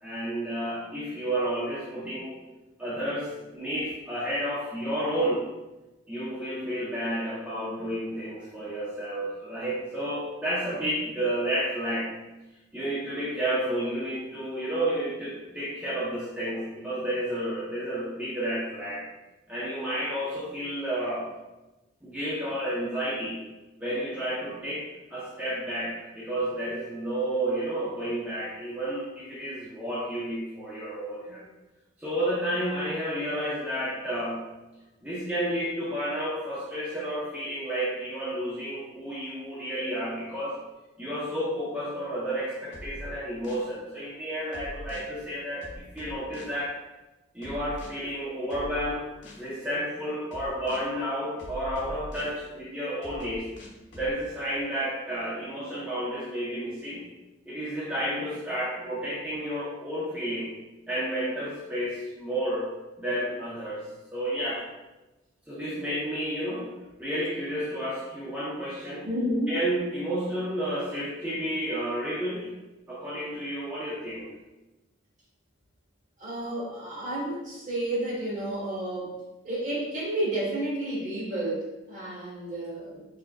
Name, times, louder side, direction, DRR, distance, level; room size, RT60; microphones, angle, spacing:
voice 1, 0.0-2.4 2.8-5.4 6.1-12.1 12.7-19.1 19.5-21.3 22.0-23.4 23.8-31.5 32.0-34.5 35.0-40.6 41.0-46.7 47.3-49.0 49.4-53.5 53.9-57.0 57.5-60.5 60.9-62.7 63.0-64.7 65.5-66.7 67.0-69.1 69.5-72.5 72.9-74.3, right 1 dB, 10° right, -9 dB, 0.7 m, -31 dB
sound 1, 42.7-43.7 44.5-45.1 45.6-46.6 47.4-47.9 48.5-49.5 50.3-50.9 51.4-52.4 53.0-54.1, equal, 70° left, 0.8 m, -42 dB
voice 2, 69.0-69.6 76.2-79.2 79.4-83.1, right 1 dB, 40° right, -6 dB, 1.3 m, -31 dB
4.7 x 3.5 x 2.3 m, 1.1 s
head